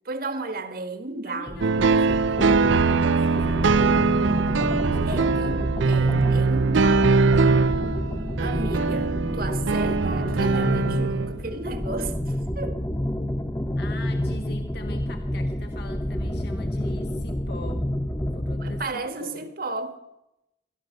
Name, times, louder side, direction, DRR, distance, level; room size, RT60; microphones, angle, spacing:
voice 1, 0.0-2.2 5.0-7.6 8.4-12.8 18.6-20.0, right 3 dB, 50° right, 1.5 m, -34 dB
voice 2, 1.2-5.5 8.8-8.9 13.8-17.8 18.3-19.5, left 2 dB, 55° left, 1.4 m, -42 dB
sound 1, 1.5-18.9, left 1 dB, 15° left, 0.6 m, -29 dB
sound 2, 1.6-11.4, right 4 dB, 75° right, 0.5 m, -22 dB
17.5 x 12.5 x 6.5 m
head